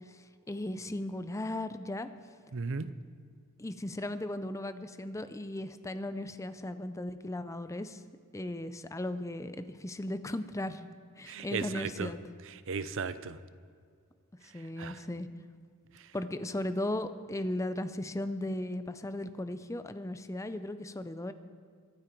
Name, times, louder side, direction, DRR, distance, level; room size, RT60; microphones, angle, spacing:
voice 1, 0.0-2.1 3.6-8.0 8.3-10.9 11.2-12.2 14.5-15.3 16.1-21.3, left 1 dB, 15° left, 11 dB, 0.5 m, -36 dB
voice 2, 2.5-2.9 11.3-12.1 12.7-13.4 14.8-15.0, right 5 dB, 60° right, 14 dB, 0.6 m, -35 dB
23.5 x 8.9 x 4.6 m, 2.1 s
head